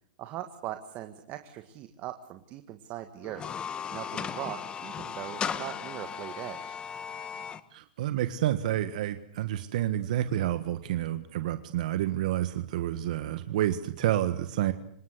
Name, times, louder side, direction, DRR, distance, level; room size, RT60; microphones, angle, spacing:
voice 1, 0.2-3.5 3.9-6.8, right 13 dB, 40° right, 8 dB, 1.7 m, -40 dB
sound 1, 3.2-7.6, left 7 dB, 20° left, 1.5 m, -36 dB
voice 2, 7.7-14.7, right 12 dB, 65° right, 11 dB, 1.5 m, -29 dB
25.5 x 19.0 x 8.3 m, 0.64 s
hypercardioid pair, 125°, 4 cm